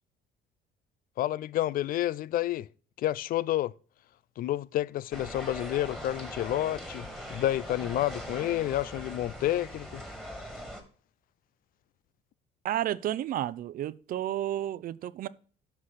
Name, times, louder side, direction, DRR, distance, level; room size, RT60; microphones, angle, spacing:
voice 1, 1.2-2.7 3.0-3.7 4.4-10.0, left 14 dB, 60° left, 0.4 m, -30 dB
sound 1, 5.1-10.8, equal, 5° left, 2.3 m, -41 dB
voice 2, 12.6-15.3, right 12 dB, 55° right, 0.5 m, -31 dB
9.8 x 6.0 x 4.1 m
cardioid pair, 110°, 17 cm